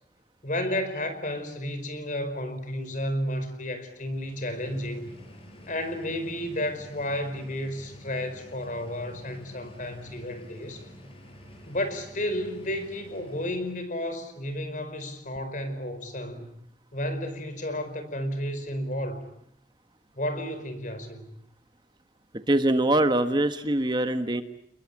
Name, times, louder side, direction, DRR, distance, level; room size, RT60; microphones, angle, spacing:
voice 1, 0.4-5.1 5.7-10.9 11.7-16.5 16.9-19.3 20.1-21.3, left 1 dB, 50° left, 10 dB, 5.0 m, -32 dB
sound 1, 4.0-14.0, equal, 35° left, 6.5 m, -49 dB
voice 2, 22.3-24.4, right 1 dB, 25° right, 9 dB, 1.3 m, -23 dB
29.5 x 21.5 x 8.7 m, 0.71 s
head